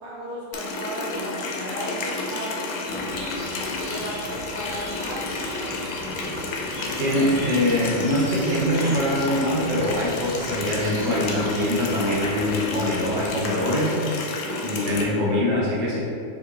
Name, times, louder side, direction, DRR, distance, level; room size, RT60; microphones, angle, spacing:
voice 1, 0.0-3.3 3.9-6.2, equal, 85° right, -7 dB, 2.0 m, -35 dB
Water tap faucet, 0.5-15.0, left 3 dB, 75° left, 1.3 m, -31 dB
sound 1, 2.8-13.5, equal, 35° right, 0.7 m, -39 dB
voice 2, 6.8-14.0 14.6-16.0, left 1 dB, 55° right, -6 dB, 1.2 m, -23 dB
5.5 x 3.2 x 2.5 m, 2.5 s
omnidirectional pair, 2.3 m